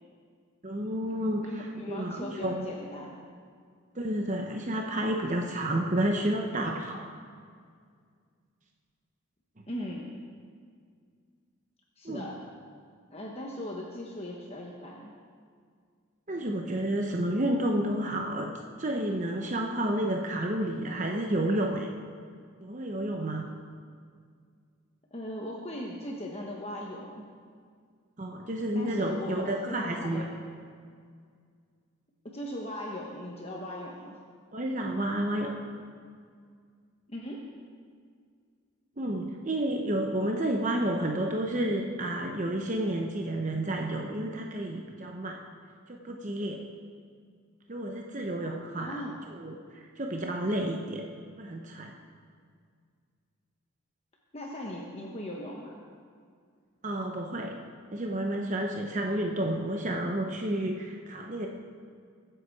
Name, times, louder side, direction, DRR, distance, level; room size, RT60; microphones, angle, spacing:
voice 1, 0.6-2.7 3.9-7.1 12.0-12.3 16.3-18.5 18.8-21.9 22.6-23.5 28.2-30.3 34.5-35.5 39.0-45.4 45.9-46.7 47.7-51.1 51.4-51.9 56.8-57.6 57.9-61.5, right 1 dB, 35° right, 2 dB, 0.8 m, -30 dB
voice 2, 1.4-3.2 9.7-10.0 12.0-12.4 13.1-15.1 25.1-27.2 28.7-30.3 32.2-34.2 37.1-37.4 48.8-49.2 54.3-55.8, left 1 dB, 30° left, -2 dB, 1.1 m, -38 dB
22.0 x 7.9 x 4.7 m, 2.1 s
head